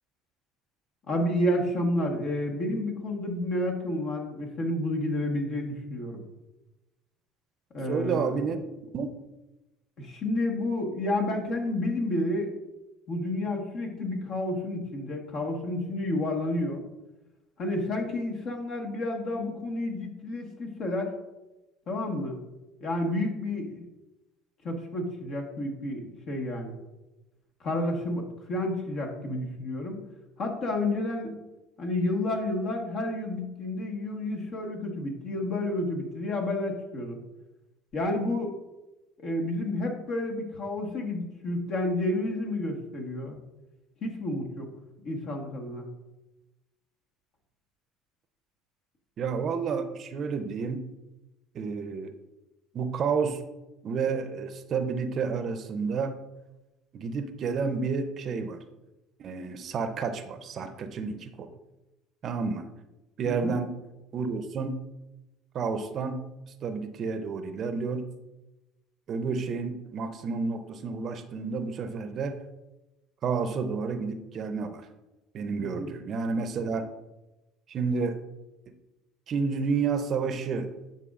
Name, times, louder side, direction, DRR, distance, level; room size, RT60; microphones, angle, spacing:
voice 1, 1.1-6.2 7.7-8.4 10.0-12.5 13.1-16.8 17.6-21.1 21.9-22.4 22.8-23.8 24.6-26.7 27.6-30.0 30.4-31.3 31.8-37.2 37.9-38.5 39.2-43.4 44.0-44.7 45.0-45.9 63.2-63.5 75.6-75.9, left 1 dB, 55° left, 1 dB, 1.4 m, -30 dB
voice 2, 7.9-8.7 8.9-9.1 49.2-50.8 51.5-52.1 52.7-53.4 53.8-56.2 56.9-58.6 59.2-61.5 62.2-62.7 63.2-63.7 64.1-64.8 65.5-66.2 66.6-68.0 69.1-72.4 73.2-74.9 75.3-76.8 77.7-78.2 79.3-80.7, right 5 dB, 50° right, 9 dB, 0.6 m, -30 dB
9.9 x 4.4 x 2.5 m, 1.0 s
supercardioid pair, 80°, 0 cm